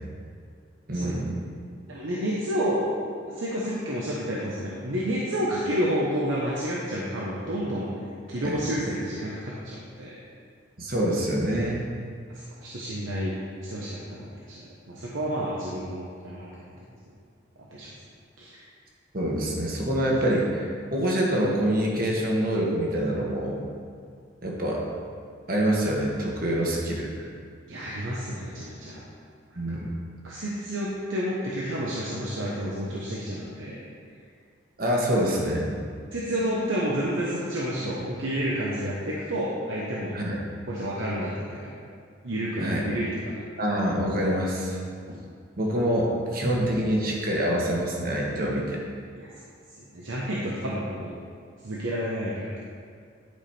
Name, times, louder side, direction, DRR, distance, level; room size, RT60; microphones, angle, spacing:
voice 1, 0.9-1.4 8.4-8.5 10.8-11.9 19.1-23.6 24.4-24.8 25.5-27.3 29.5-29.9 34.8-35.7 38.0-38.1 40.1-40.4 42.6-42.8 43.6-44.8 45.1-45.2 45.6-48.8, right 1 dB, 45° right, -2 dB, 1.5 m, -26 dB
voice 2, 1.9-2.8 3.3-7.9 8.3-10.2 12.3-13.4 13.6-16.6 17.7-17.9 18.4-18.6 27.7-29.0 29.7-29.8 30.2-33.8 36.1-40.2 40.7-41.7 42.2-43.3 49.2-49.3 49.9-51.1 51.6-52.7, equal, 80° right, -6 dB, 1.1 m, -30 dB
11.0 x 5.2 x 4.4 m, 2.2 s
head